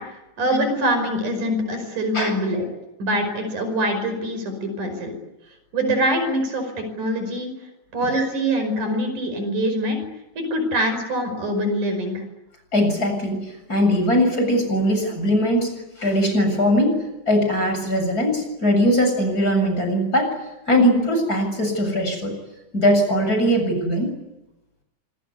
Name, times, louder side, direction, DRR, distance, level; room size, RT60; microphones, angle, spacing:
voice 1, 0.0-2.7 3.0-5.1 5.7-7.5 7.9-10.0 10.4-12.2, equal, 90° right, 7 dB, 6.8 m, -24 dB
voice 2, 12.7-13.4 13.7-15.7 16.0-17.0 17.3-20.3 20.7-22.3 22.7-24.1, equal, 30° left, 4 dB, 8.0 m, -20 dB
26.0 x 23.5 x 9.8 m, 0.97 s
omnidirectional pair, 3.4 m